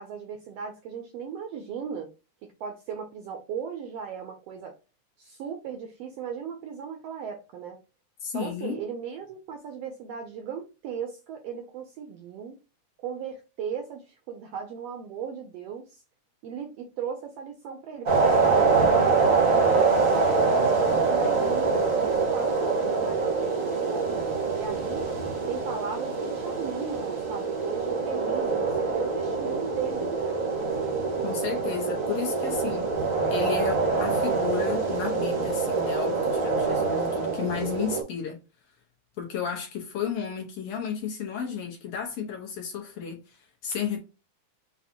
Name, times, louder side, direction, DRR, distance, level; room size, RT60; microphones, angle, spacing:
voice 1, 0.0-2.1 2.6-4.7 5.2-7.8 8.3-12.6 13.0-16.0 16.4-19.7 20.1-25.1 25.5-30.5, right 7 dB, 80° right, 1.4 m, -37 dB
voice 2, 8.2-8.8 31.2-32.9 33.3-38.4 39.2-44.0, left 7 dB, 65° left, 1.8 m, -33 dB
sound 1, 18.1-38.0, right 4 dB, 55° right, 0.8 m, -25 dB
6.8 x 2.4 x 2.7 m
omnidirectional pair, 3.4 m